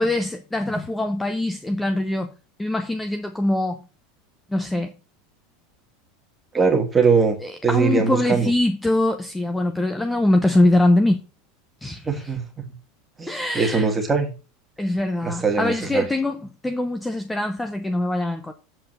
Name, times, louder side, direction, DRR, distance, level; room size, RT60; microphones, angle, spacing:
voice 1, 0.0-2.3 2.6-3.8 4.5-4.9 7.4-11.2 11.8-12.3 13.3-13.9 14.8-18.5, left 1 dB, 5° left, 0.7 m, -23 dB
voice 2, 6.5-7.4 7.6-8.5 12.1-12.7 13.2-14.3 15.2-16.0, right 5 dB, 10° right, 2.1 m, -21 dB
7.7 x 4.6 x 6.6 m
supercardioid pair, 150°, 0 cm